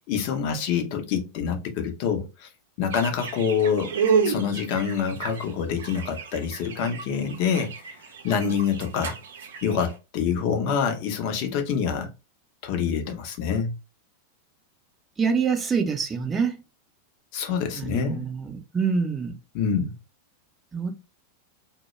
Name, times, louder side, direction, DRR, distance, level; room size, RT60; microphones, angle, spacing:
voice 1, 0.1-2.5 2.8-4.0 4.2-8.0 8.2-9.2 9.6-12.1 12.6-13.7 17.3-18.3 19.5-19.9, left 7 dB, 45° left, 0.6 m, -26 dB
sound 1, 2.9-9.9, right 6 dB, 60° right, 0.5 m, -30 dB
voice 2, 15.2-16.6 17.7-19.3 20.7-20.9, right 5 dB, 20° right, 0.6 m, -26 dB
2.1 x 2.1 x 3.0 m
figure-of-eight pair, 90°, 0 cm